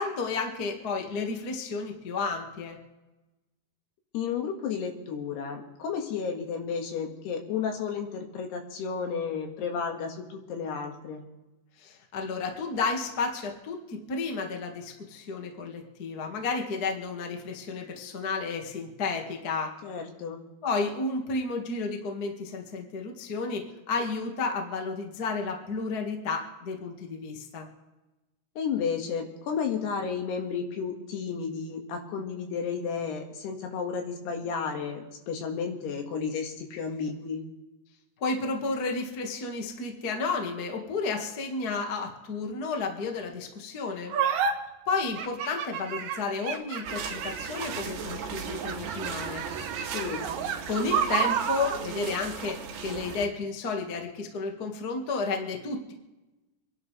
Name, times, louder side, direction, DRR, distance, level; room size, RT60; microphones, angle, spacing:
voice 1, 0.0-2.8 11.8-19.7 20.6-27.7 38.2-44.1 44.9-49.4 50.6-55.9, left 4 dB, 45° left, 2 dB, 1.2 m, -32 dB
voice 2, 4.1-11.2 19.8-20.4 28.6-37.4 49.8-50.3, left 6 dB, 75° left, 2 dB, 3.8 m, -32 dB
sound 1, 44.1-44.5 45.2-48.0 48.6-51.8, right 7 dB, 65° right, 2.5 m, -30 dB
sound 2, 46.8-53.3, right 6 dB, 80° right, 3.8 m, -37 dB
27.5 x 11.0 x 3.3 m, 1.0 s
omnidirectional pair, 4.8 m